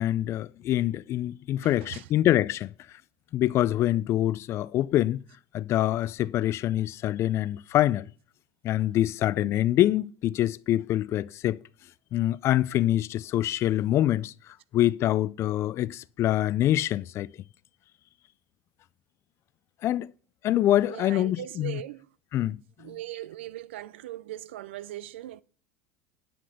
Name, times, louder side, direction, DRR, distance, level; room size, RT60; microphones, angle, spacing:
voice 1, 0.0-2.7 3.3-5.2 5.5-8.1 8.6-11.6 12.1-17.3 19.8-20.1 20.4-21.8 22.3-22.6 22.8-23.0, left 13 dB, 45° left, 0.4 m, -25 dB
voice 2, 20.8-22.1 22.8-25.4, right 13 dB, 90° right, 0.4 m, -39 dB
10.0 x 6.0 x 5.0 m
supercardioid pair, 100°, 6 cm